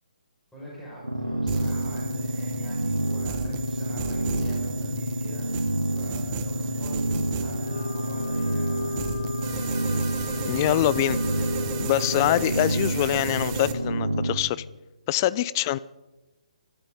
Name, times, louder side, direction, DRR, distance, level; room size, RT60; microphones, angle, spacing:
voice 1, 0.5-7.1 7.4-9.1, equal, 5° left, 5.6 m, -43 dB
sound 1, 1.0-14.4, right 1 dB, 90° right, 2.1 m, -28 dB
sound 2, 1.5-13.7, right 8 dB, 25° right, 1.2 m, -37 dB
Wind instrument woodwind instrument, 7.6-12.5, left 6 dB, 55° left, 4.3 m, -37 dB
voice 2, 10.4-11.2 11.8-14.6 15.1-15.8, left 14 dB, 30° left, 0.5 m, -24 dB
24.5 x 13.5 x 3.9 m
figure-of-eight pair, 135°, 4 cm